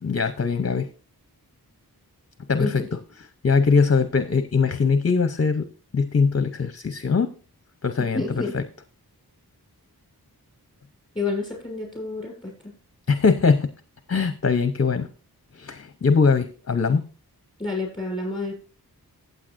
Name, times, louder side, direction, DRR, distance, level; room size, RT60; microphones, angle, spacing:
voice 1, 0.0-0.9 2.5-2.7 3.4-5.7 5.9-7.3 7.8-8.2 8.5-8.6 13.1-13.7 14.1-15.1 15.5-17.0, left 5 dB, 40° left, 11 dB, 0.7 m, -21 dB
voice 2, 8.0-8.6 11.1-12.5 17.6-18.5, left 3 dB, 10° left, 0 dB, 6.5 m, -29 dB
15.0 x 8.1 x 2.6 m, 0.38 s
wide cardioid pair, 75°, 38 cm